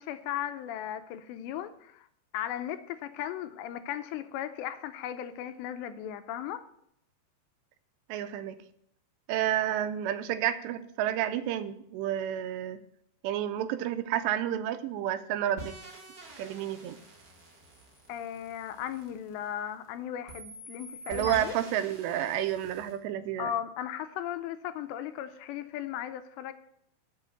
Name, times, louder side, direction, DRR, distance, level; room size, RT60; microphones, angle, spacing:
voice 1, 0.0-2.1 2.3-6.6 18.1-21.6 23.4-26.5, left 10 dB, 85° left, 10 dB, 2.8 m, -36 dB
voice 2, 8.1-8.6 9.3-12.8 13.2-15.8 16.4-17.0 21.1-23.5, right 11 dB, 85° right, 11 dB, 2.7 m, -30 dB
sound 1, 15.6-19.9 20.3-23.0, right 1 dB, 45° right, 1.3 m, -47 dB
7.4 x 6.1 x 7.9 m, 0.73 s
omnidirectional pair, 5.0 m